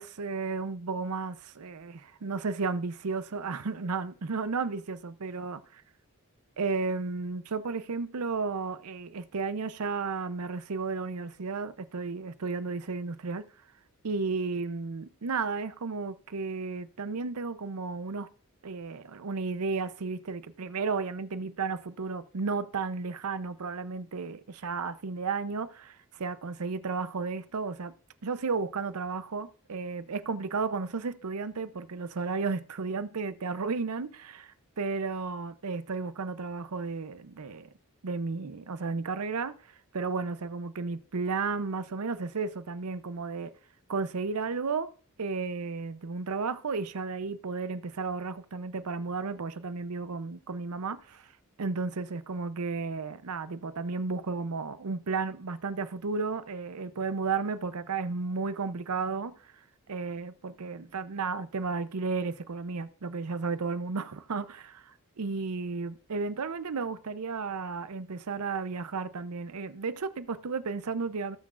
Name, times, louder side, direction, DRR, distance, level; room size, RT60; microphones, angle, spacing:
voice 1, 0.0-5.6 6.6-13.5 14.0-18.3 18.6-27.9 28.2-37.7 38.0-39.6 39.9-43.5 43.9-44.9 45.2-51.3 51.6-59.5 59.9-71.4, right 4 dB, 90° right, 0.6 m, -33 dB
17.5 x 6.1 x 2.5 m
head